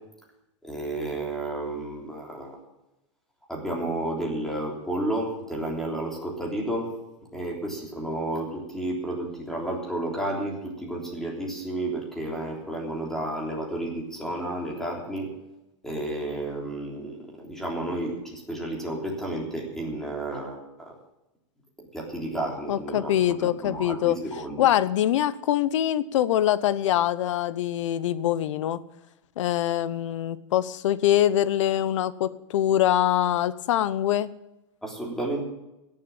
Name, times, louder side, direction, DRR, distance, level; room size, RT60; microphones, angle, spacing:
voice 1, 0.6-2.6 3.5-6.9 7.3-15.3 15.8-20.9 21.9-24.7 34.8-35.4, right 1 dB, 5° left, -1 dB, 3.4 m, -31 dB
voice 2, 22.7-24.2 24.6-28.8 29.4-34.3, left 12 dB, 80° left, 16 dB, 0.9 m, -24 dB
16.5 x 7.6 x 8.9 m, 0.94 s
supercardioid pair, 160°, 16 cm